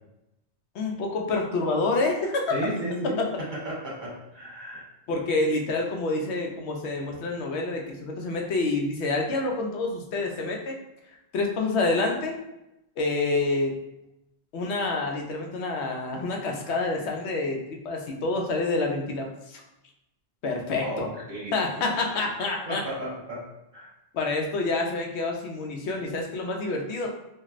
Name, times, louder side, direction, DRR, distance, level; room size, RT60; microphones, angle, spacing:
voice 1, 0.7-2.5 3.2-3.3 5.1-10.8 11.3-12.3 13.0-13.7 14.5-19.6 20.4-21.1 21.5-22.8 24.1-27.1, left 3 dB, 85° left, 1 dB, 0.9 m, -27 dB
voice 2, 2.5-3.3 3.6-4.8 20.8-22.2 22.7-23.5 23.7-23.9, right 1 dB, 45° right, -6 dB, 1.2 m, -34 dB
3.0 x 2.5 x 2.4 m, 0.90 s
omnidirectional pair, 1.1 m